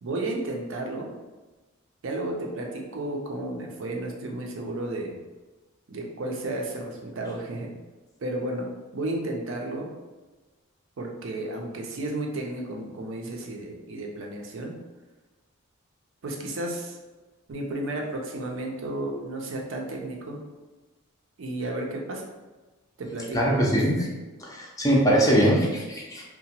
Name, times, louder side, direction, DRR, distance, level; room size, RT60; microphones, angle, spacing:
voice 1, 0.0-1.1 2.0-5.2 5.9-7.7 8.2-9.9 11.0-14.7 16.2-17.0 17.5-20.4 21.4-22.2 23.0-23.7, right 2 dB, 65° right, 1 dB, 0.5 m, -32 dB
voice 2, 23.3-24.0 24.4-26.2, equal, 15° left, -3 dB, 0.4 m, -22 dB
2.8 x 2.1 x 2.8 m, 1.2 s
head